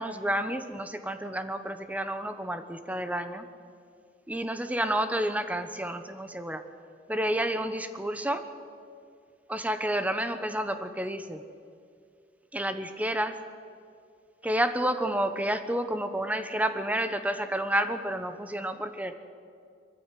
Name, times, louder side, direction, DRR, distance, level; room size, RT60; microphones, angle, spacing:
voice 1, 0.0-3.5 4.3-6.6 7.1-8.5 9.5-11.4 12.5-13.4 14.4-19.1, right 1 dB, 10° right, 9 dB, 1.0 m, -30 dB
22.0 x 14.5 x 9.2 m, 2.3 s
head